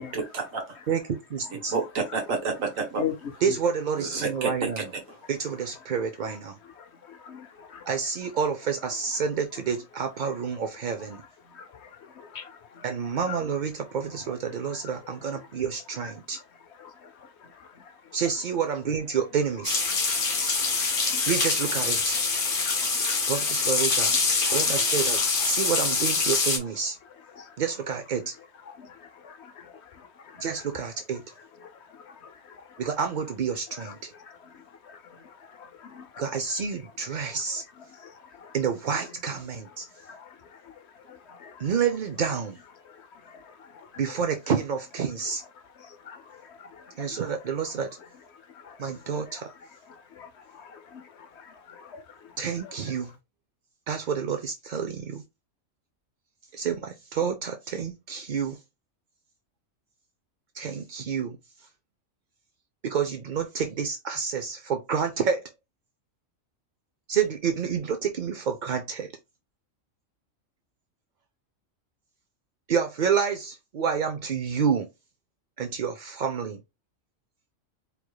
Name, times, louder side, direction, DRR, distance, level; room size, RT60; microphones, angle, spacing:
voice 1, 0.0-0.6 1.5-3.0 4.0-5.2 6.3-6.4, right 4 dB, 75° right, 1.6 m, -30 dB
voice 2, 1.3-1.7 3.4-4.9 5.3-6.6 7.9-11.2 12.8-16.4 18.1-19.8 21.3-22.2 23.3-24.2 24.5-27.0 27.6-28.3 30.4-31.2 32.8-34.1 36.2-37.6 38.5-39.8 41.6-42.6 44.0-45.4 47.0-47.9 48.8-49.5 52.4-53.1 53.9-55.2 56.5-58.6 60.5-61.4 62.8-65.5 67.1-69.1 72.7-74.9 75.6-76.6, right 6 dB, 60° right, 0.5 m, -29 dB
voice 3, 7.1-7.8 11.6-11.9 12.3-12.5 12.8-12.9 13.3-13.4 16.0-16.1 21.1-21.3 22.6-22.9 28.8-28.9 29.2-29.5 30.4-30.5 33.8-33.9 35.6-36.2 38.0-38.1 40.1-40.2 41.3-41.5 46.1-46.4 47.1-47.2 48.6-48.8 49.3-49.4 50.2-50.3 50.5-51.0 51.8-52.0, left 9 dB, 60° left, 0.8 m, -38 dB
sound 1, 19.6-26.6, left 4 dB, 40° left, 1.2 m, -25 dB
4.7 x 3.3 x 2.2 m
omnidirectional pair, 1.4 m